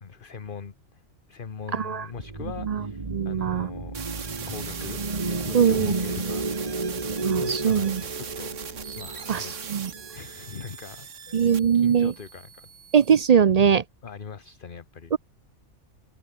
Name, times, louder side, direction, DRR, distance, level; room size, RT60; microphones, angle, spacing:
voice 1, 0.0-1.0 1.3-7.0 7.4-8.5 9.0-9.7 10.1-12.7 14.0-15.1, left 6 dB, 45° left, 1.4 m, -41 dB
voice 2, 1.7-2.1 2.6-2.8 3.1-3.7 5.5-5.9 7.2-8.0 9.3-9.9 11.3-12.1 12.9-13.8 15.1-15.2, right 7 dB, 55° right, 0.4 m, -21 dB
sound 1, 2.1-10.5, right 3 dB, 30° right, 1.7 m, -33 dB
sound 2, 3.9-13.2, right 7 dB, 90° right, 1.7 m, -39 dB
omnidirectional pair, 1.2 m